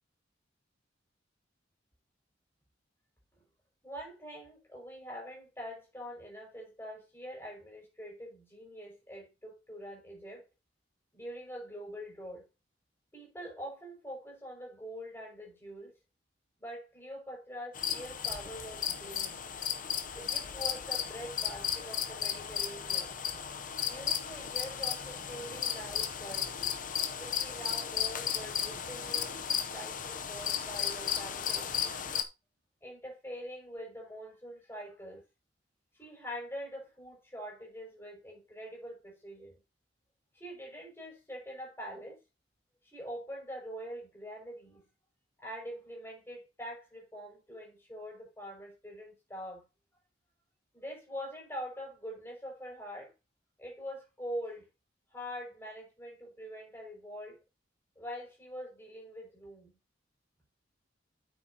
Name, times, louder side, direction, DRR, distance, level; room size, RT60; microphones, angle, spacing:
voice 1, 3.8-10.4 11.1-12.4 13.1-15.9 16.6-19.4 20.1-23.1 23.8-26.5 27.2-29.4 29.6-32.0 32.8-35.2 36.0-39.5 40.3-42.2 42.9-44.8 45.4-49.6 50.7-53.1 53.6-54.7 55.1-57.4 58.0-59.8, equal, 15° left, 5.9 m, -44 dB
sound 1, 17.7-32.2, left 8 dB, 45° left, 0.8 m, -35 dB
9.1 x 8.4 x 2.9 m
head